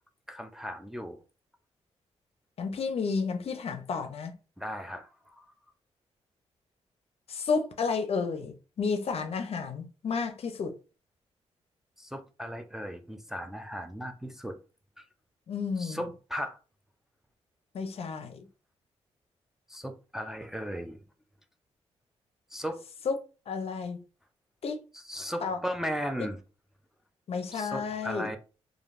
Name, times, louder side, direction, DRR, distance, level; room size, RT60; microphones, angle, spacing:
voice 1, 0.3-1.2 4.6-5.1 5.4-5.5 12.0-14.6 15.8-16.6 19.7-21.0 22.5-22.8 24.9-26.4 27.5-28.4, equal, 5° right, 0.4 m, -36 dB
voice 2, 2.6-4.3 7.3-10.7 15.5-16.0 17.7-18.4 23.1-23.2 23.5-24.0 24.6-24.8 25.4-25.6 27.3-28.3, left 5 dB, 60° left, 0.6 m, -31 dB
3.2 x 2.5 x 2.5 m
cardioid pair, 85°, 12 cm